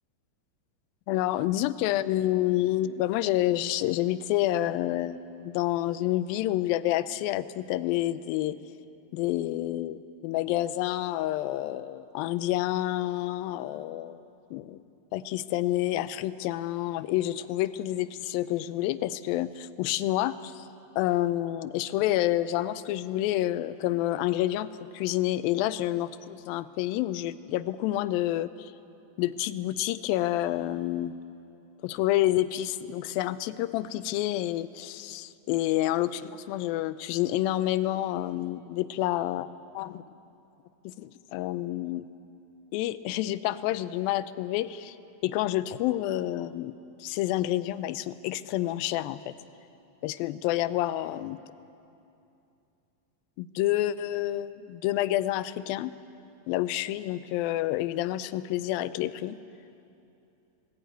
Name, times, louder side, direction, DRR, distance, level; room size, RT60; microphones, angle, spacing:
voice 1, 1.1-8.6 9.1-14.2 14.5-14.8 15.1-20.7 21.0-28.7 29.2-31.1 31.8-39.5 39.7-40.0 40.8-42.1 42.7-45.0 45.2-46.7 47.0-49.3 50.0-51.4 53.4-55.9 56.5-59.4, left 14 dB, 85° left, 15 dB, 2.4 m, -28 dB
19.0 x 16.5 x 9.2 m, 2.7 s
omnidirectional pair, 4.1 m